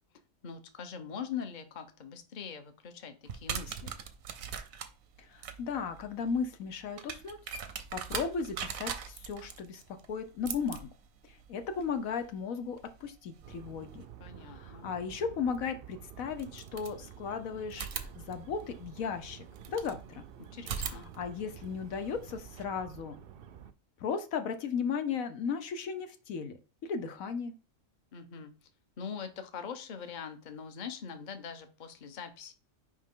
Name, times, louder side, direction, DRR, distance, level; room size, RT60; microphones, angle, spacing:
voice 1, 0.4-3.9 14.2-14.9 20.5-21.1 28.1-28.7 29.0-32.5, left 7 dB, 40° left, 8 dB, 0.9 m, -42 dB
sound 1, 3.3-14.1 15.5-15.6 16.3-17.3 17.7-20.0 20.6-22.6, right 7 dB, 90° right, 1.2 m, -42 dB
voice 2, 5.2-7.4 7.9-9.8 10.1-10.9 11.2-14.0 14.4-20.2 20.8-23.2 24.0-27.5, left 6 dB, 90° left, 8 dB, 1.3 m, -36 dB
sound 2, 13.4-23.7, right 9 dB, 60° right, 0.6 m, -50 dB
6.4 x 5.0 x 3.7 m, 0.35 s
omnidirectional pair, 1.4 m